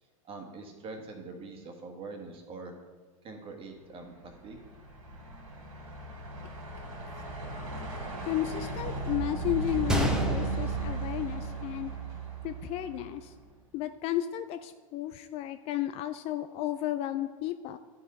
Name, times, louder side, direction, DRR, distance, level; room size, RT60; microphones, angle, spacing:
voice 1, 0.2-2.7 3.2-4.6, right 3 dB, 30° right, 3 dB, 1.5 m, -43 dB
Truck, 3.9-13.3, right 4 dB, 80° right, 2.8 m, -36 dB
voice 2, 8.3-11.9 12.4-13.3 13.7-17.8, left 13 dB, 35° left, 10 dB, 0.3 m, -33 dB
Gunshot gunfire, 9.9-11.9 12.2-12.3 13.0-13.2, equal, 5° right, 0.9 m, -32 dB
10.5 x 5.5 x 4.1 m, 1.5 s
hypercardioid pair, 110°, 18 cm